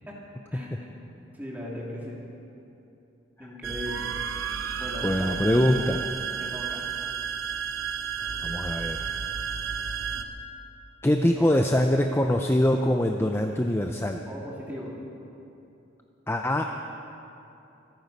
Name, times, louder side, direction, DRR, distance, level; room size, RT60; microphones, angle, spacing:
voice 1, 0.5-1.0 1.3-2.2 3.4-4.1 4.8-5.4 6.4-6.9 11.3-11.4 14.3-14.9, left 1 dB, 10° right, -4 dB, 2.5 m, -38 dB
sound 1, 3.6-10.2, right 7 dB, 90° right, 0.9 m, -32 dB
voice 2, 5.0-6.0 8.4-9.0 11.0-14.2 16.3-16.6, left 1 dB, 10° left, 4 dB, 0.5 m, -23 dB
25.5 x 9.3 x 5.4 m, 2.9 s
head